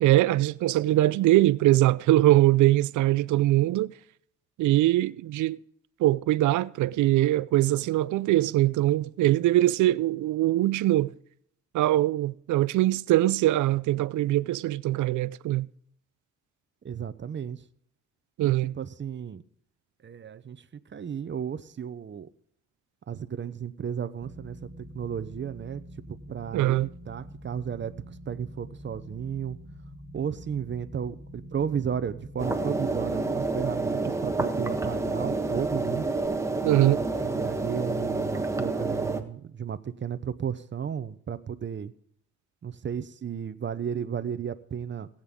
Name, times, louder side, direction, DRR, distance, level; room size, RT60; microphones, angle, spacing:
voice 1, 0.0-3.9 4.6-5.6 6.0-11.1 11.7-15.7 18.4-18.7 26.5-26.9 36.6-37.0, right 15 dB, 75° right, 0.5 m, -22 dB
voice 2, 16.8-17.6 18.4-19.4 20.0-22.3 23.1-25.8 26.1-26.8 27.1-29.6 30.1-36.1 36.8-41.9 42.6-45.1, right 8 dB, 40° right, 0.8 m, -34 dB
sound 1, 24.2-36.3, equal, 15° left, 3.2 m, -46 dB
sound 2, 32.4-39.2, right 3 dB, 10° right, 1.4 m, -29 dB
19.5 x 8.9 x 3.7 m
cardioid pair, 90°, 30 cm